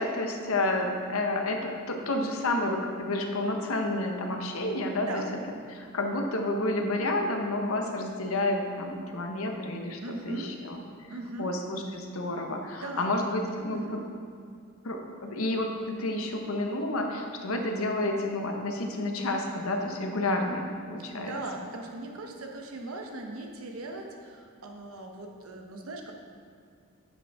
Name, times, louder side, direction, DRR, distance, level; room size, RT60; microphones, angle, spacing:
voice 1, 0.0-5.2 5.7-10.0 10.3-10.8 11.4-14.0 14.8-21.3, left 2 dB, 85° left, 3 dB, 1.0 m, -30 dB
voice 2, 10.0-10.5 11.1-11.5 12.7-13.2 13.7-14.0 21.3-26.1, right 2 dB, 90° right, 2 dB, 1.0 m, -39 dB
10.5 x 6.2 x 3.5 m, 2.3 s
head